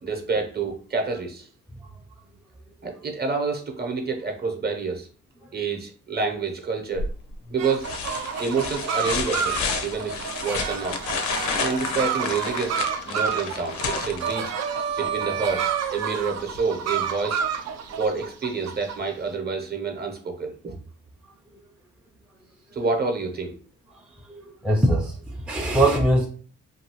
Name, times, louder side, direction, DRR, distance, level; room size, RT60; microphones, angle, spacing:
voice 1, 0.0-1.5 2.8-5.1 5.5-7.1 7.5-7.9 8.4-11.0 11.5-12.8 13.0-14.5 15.0-17.4 18.0-20.7 22.7-23.5, right 4 dB, 30° right, 4 dB, 0.8 m, -28 dB
sound 1, 7.0-7.3 7.8-14.8 16.5-16.6, left 5 dB, 70° left, 0.6 m, -31 dB
sound 2, 7.6-19.0, right 7 dB, 60° right, 0.5 m, -29 dB
voice 2, 24.3-26.3, right 1 dB, 5° right, -1 dB, 0.4 m, -22 dB
2.7 x 2.6 x 2.9 m, 0.43 s
cardioid pair, 90°, 30 cm